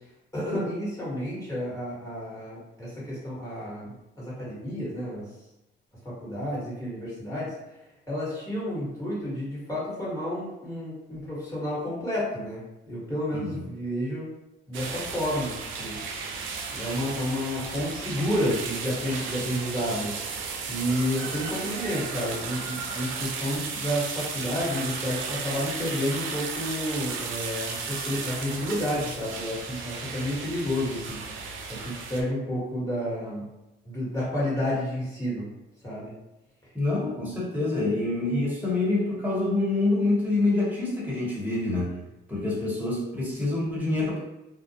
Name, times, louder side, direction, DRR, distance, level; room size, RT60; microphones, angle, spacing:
voice 1, 0.3-5.2 6.0-7.5 8.1-14.3 14.7-16.2 16.7-20.1 20.7-33.4 33.8-35.5 35.8-36.1, equal, 15° left, -8 dB, 1.4 m, -30 dB
sound 1, 14.7-32.2, right 5 dB, 80° right, 0.4 m, -34 dB
voice 2, 36.7-41.9 42.3-44.2, left 2 dB, 10° right, -6 dB, 1.1 m, -26 dB
2.4 x 2.1 x 2.8 m, 0.96 s
cardioid pair, 90°, 20 cm